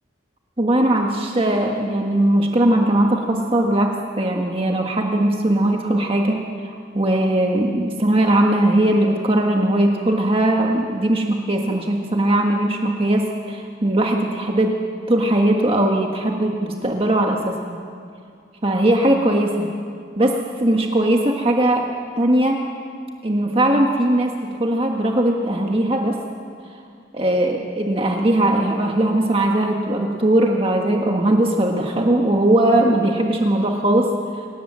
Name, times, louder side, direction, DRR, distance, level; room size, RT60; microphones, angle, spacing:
voice 1, 0.6-14.8 15.1-17.8 18.6-19.7 20.2-21.9 22.2-22.6 23.2-26.2 27.1-34.5, right 1 dB, 30° right, 2 dB, 1.5 m, -19 dB
26.0 x 18.5 x 7.5 m, 2.3 s
head